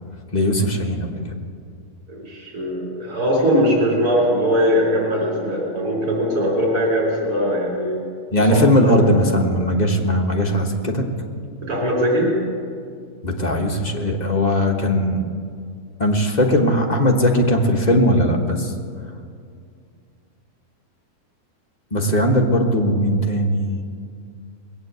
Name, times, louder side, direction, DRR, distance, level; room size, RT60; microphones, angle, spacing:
voice 1, 0.3-1.1 8.3-11.0 13.2-15.2 16.0-18.7 21.9-23.8, equal, 30° left, 1 dB, 1.4 m, -19 dB
voice 2, 2.1-8.0 8.4-9.0 11.6-12.3, equal, 70° right, -4 dB, 4.3 m, -20 dB
20.5 x 8.8 x 8.0 m, 2.2 s
omnidirectional pair, 1.6 m